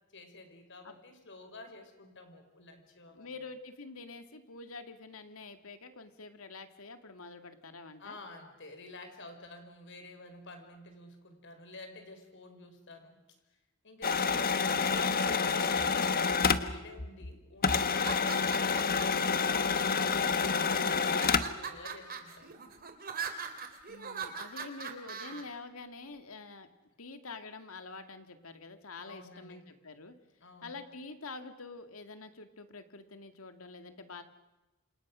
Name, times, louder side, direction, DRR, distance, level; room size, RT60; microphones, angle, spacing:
voice 1, 0.1-3.3 8.0-13.2 13.8-19.6 19.9-22.6 29.0-29.6 30.4-30.8, left 2 dB, 60° left, 6 dB, 5.0 m, -49 dB
voice 2, 3.1-8.2 23.9-26.7 27.0-30.1 30.6-34.2, left 3 dB, 80° left, 8 dB, 2.2 m, -47 dB
sound 1, 14.0-17.3 17.6-21.6, left 5 dB, 45° left, 1.3 m, -28 dB
sound 2, 17.9-19.3 20.0-20.5 21.0-25.4, right 6 dB, 45° right, 3.1 m, -41 dB
29.0 x 27.5 x 6.3 m, 1.1 s
head